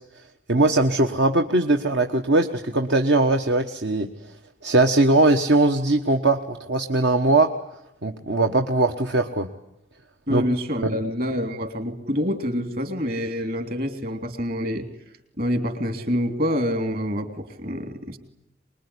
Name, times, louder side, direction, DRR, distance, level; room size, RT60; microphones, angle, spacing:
voice 1, 0.5-4.1 4.6-7.5 8.0-9.5 10.3-10.4 10.8-11.0, right 2 dB, 75° right, 5 dB, 1.3 m, -20 dB
voice 2, 10.3-14.9 15.4-18.2, equal, 50° right, 8 dB, 3.3 m, -26 dB
24.5 x 21.5 x 9.9 m, 0.85 s
head